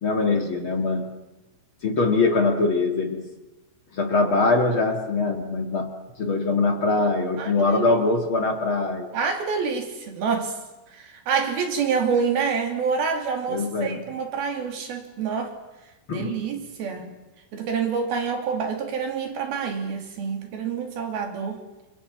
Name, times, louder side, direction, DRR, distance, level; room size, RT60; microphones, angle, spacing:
voice 1, 0.0-1.1 1.8-3.2 3.9-9.1 13.5-14.0 16.1-16.4, left 3 dB, 40° left, 4 dB, 2.4 m, -23 dB
voice 2, 7.4-8.0 9.1-10.6 10.9-15.5 16.1-17.2 17.5-21.6, right 6 dB, 80° right, 4 dB, 4.7 m, -27 dB
28.5 x 26.0 x 7.6 m, 1.1 s
omnidirectional pair, 4.3 m